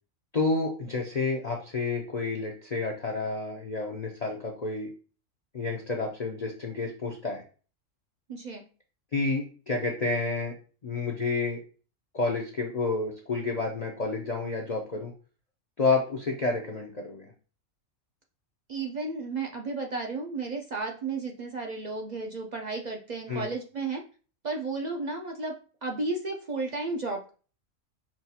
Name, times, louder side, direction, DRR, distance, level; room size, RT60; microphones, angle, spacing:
voice 1, 0.3-4.9 5.5-7.4 9.1-10.5 10.8-11.6 12.1-15.1 15.8-17.3 23.3-23.5, left 3 dB, 45° left, 0 dB, 0.5 m, -30 dB
voice 2, 8.3-8.6 18.7-24.0 24.4-25.5 25.8-27.3, right 3 dB, 55° right, 2 dB, 0.5 m, -33 dB
5.9 x 2.4 x 2.7 m, 0.38 s
omnidirectional pair, 1.4 m